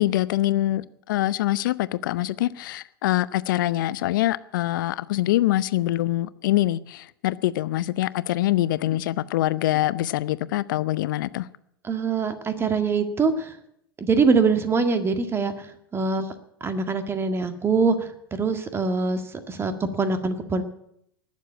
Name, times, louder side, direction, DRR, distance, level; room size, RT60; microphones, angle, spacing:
voice 1, 0.0-11.5, left 15 dB, 60° left, 18 dB, 0.7 m, -24 dB
voice 2, 11.8-13.6 14.0-16.3 16.6-20.6, right 4 dB, 20° right, 8 dB, 1.9 m, -24 dB
19.0 x 7.5 x 8.7 m, 0.74 s
figure-of-eight pair, 90°, 12 cm